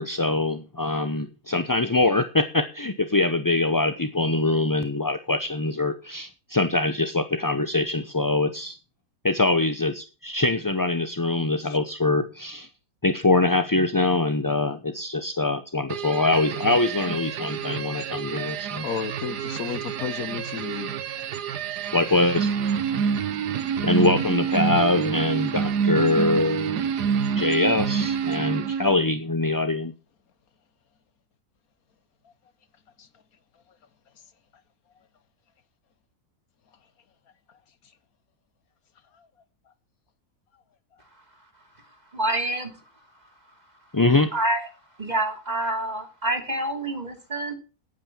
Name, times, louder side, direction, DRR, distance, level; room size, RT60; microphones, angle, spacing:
voice 1, 0.0-8.8 9.2-12.7 13.0-18.9 21.9-22.5 23.8-26.9 27.4-29.9 43.9-44.3, left 2 dB, 20° left, 9 dB, 0.5 m, -23 dB
sound 1, 15.9-29.1, right 7 dB, 90° right, 1.5 m, -27 dB
voice 2, 18.8-20.9 33.0-33.1, left 7 dB, 65° left, 14 dB, 1.4 m, -32 dB
voice 3, 42.1-42.7 44.3-44.7 45.0-47.5, right 1 dB, 25° right, 4 dB, 3.0 m, -27 dB
10.0 x 9.2 x 7.3 m, 0.33 s
omnidirectional pair, 1.7 m